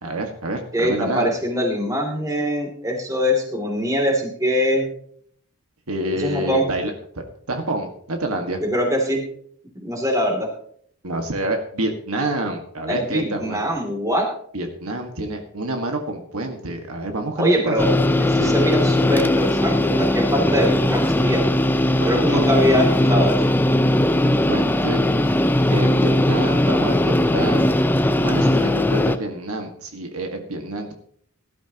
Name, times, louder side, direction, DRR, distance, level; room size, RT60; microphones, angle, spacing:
voice 1, 0.0-1.3 5.9-8.6 11.0-13.6 14.5-17.8 18.3-18.6 22.0-22.6 24.2-25.0 25.7-27.7 28.2-31.1, right 1 dB, 75° right, 3 dB, 1.8 m, -28 dB
voice 2, 0.7-4.9 6.2-6.7 8.6-9.2 9.8-10.5 12.9-14.3 17.4-21.4 22.0-23.4, equal, 15° right, 1 dB, 2.9 m, -22 dB
sound 1, 17.8-29.2, left 1 dB, 10° left, 0.5 m, -19 dB
18.5 x 12.0 x 3.0 m, 0.63 s
head